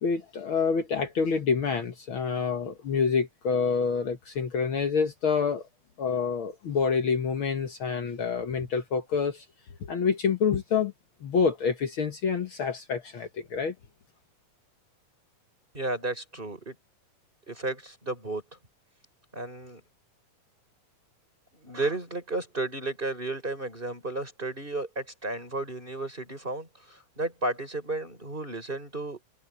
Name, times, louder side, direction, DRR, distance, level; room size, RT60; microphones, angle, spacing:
voice 1, 0.0-5.6 6.0-9.4 9.8-10.9 11.2-13.7, left 5 dB, 60° left, 1.5 m, -27 dB
voice 2, 15.7-16.7 17.5-18.4 19.3-19.8 21.6-29.2, right 2 dB, 15° right, 5.0 m, -33 dB
omnidirectional pair, 3.8 m